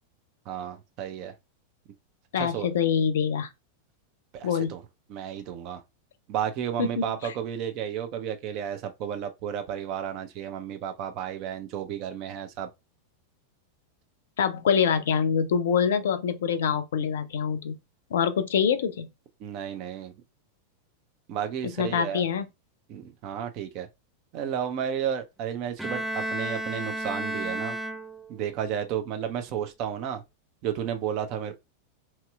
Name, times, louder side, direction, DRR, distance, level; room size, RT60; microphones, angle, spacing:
voice 1, 0.5-1.3 2.4-2.7 4.3-4.8 5.1-5.8 6.3-12.7 19.4-20.1 21.3-22.2 22.9-23.9 24.3-27.8 28.3-30.2 30.6-31.5, right 9 dB, 40° right, 0.6 m, -32 dB
voice 2, 2.3-3.5 4.4-4.8 6.8-7.3 14.4-17.8 18.1-19.1 21.6-22.5, left 7 dB, 60° left, 0.4 m, -25 dB
Bowed string instrument, 25.8-28.5, right 1 dB, 5° right, 0.4 m, -32 dB
3.1 x 2.9 x 2.3 m
figure-of-eight pair, 90°, 0 cm